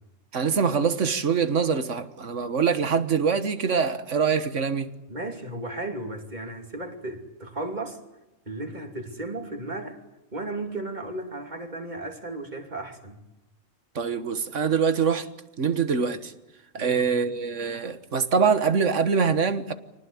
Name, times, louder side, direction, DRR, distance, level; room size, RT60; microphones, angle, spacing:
voice 1, 0.3-4.9 14.0-15.3 15.6-16.3 16.7-19.7, right 6 dB, 70° right, 1.8 m, -24 dB
voice 2, 5.1-8.0 8.5-10.0 10.3-13.2 16.7-17.1, right 2 dB, 35° right, 3.0 m, -35 dB
25.5 x 19.0 x 8.6 m
omnidirectional pair, 1.3 m